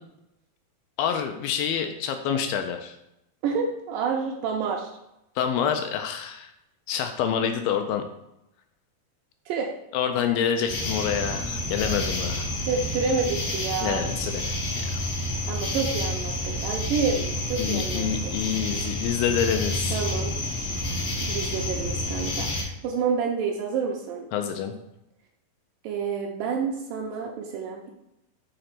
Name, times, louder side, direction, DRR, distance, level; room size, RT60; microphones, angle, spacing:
voice 1, 1.0-3.0 5.4-6.5 6.9-8.0 9.9-12.6 13.8-15.0 17.6-20.0 24.3-24.7, left 8 dB, 80° left, 6 dB, 2.2 m, -27 dB
voice 2, 3.4-4.9 9.5-9.7 12.7-14.0 15.5-18.4 19.9-20.3 21.2-24.3 25.8-27.9, right 5 dB, 80° right, 0 dB, 2.1 m, -29 dB
sound 1, 10.7-22.6, left 1 dB, 65° left, 1.1 m, -29 dB
6.6 x 3.9 x 5.9 m, 0.86 s
omnidirectional pair, 4.5 m